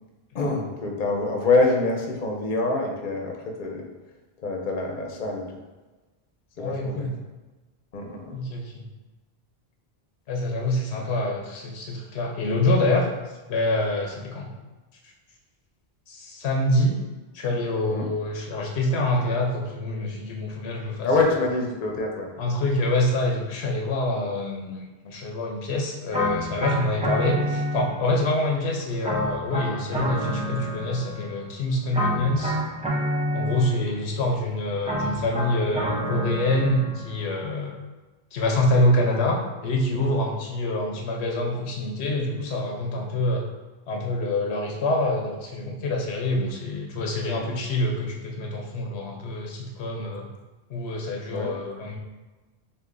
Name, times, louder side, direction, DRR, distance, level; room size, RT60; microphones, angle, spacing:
voice 1, 0.3-3.9 4.4-5.5 6.6-7.1 7.9-8.4 10.9-11.0 17.9-18.1 21.0-22.3 39.9-40.1 47.3-47.5 51.3-51.6, left 3 dB, 55° left, 1 dB, 0.8 m, -25 dB
voice 2, 6.6-7.1 8.3-8.8 10.3-13.1 13.5-14.5 16.1-17.0 17.3-21.1 22.4-32.6 33.3-37.7 38.3-43.4 43.9-50.3 50.7-52.0, left 1 dB, 90° left, 0 dB, 1.0 m, -26 dB
sound 1, 26.1-28.2 29.0-31.4 31.9-34.0 34.8-37.2, equal, 10° right, 0.4 m, -28 dB
6.6 x 2.5 x 2.5 m, 1.2 s
omnidirectional pair, 1.1 m